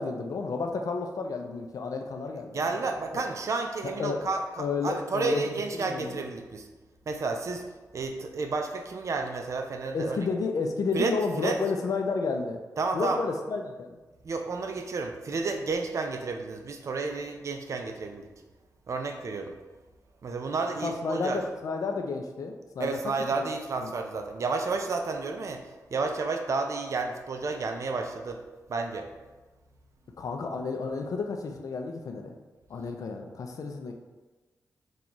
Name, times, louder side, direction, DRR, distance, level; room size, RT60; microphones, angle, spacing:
voice 1, 0.0-2.8 3.1-3.2 4.0-4.3 4.6-6.2 9.9-12.6 12.9-14.0 20.8-23.0 23.3-23.4 23.8-23.9 30.2-32.3 32.7-33.9, left 4 dB, 65° left, 4 dB, 0.4 m, -31 dB
voice 2, 2.5-6.7 7.1-10.2 10.9-11.6 12.8-13.2 14.2-18.3 18.9-19.6 20.2-21.4 22.8-25.6 25.9-28.4 28.7-29.1, right 3 dB, 55° right, 4 dB, 0.4 m, -31 dB
4.0 x 2.3 x 2.9 m, 1.2 s
wide cardioid pair, 95°, 6 cm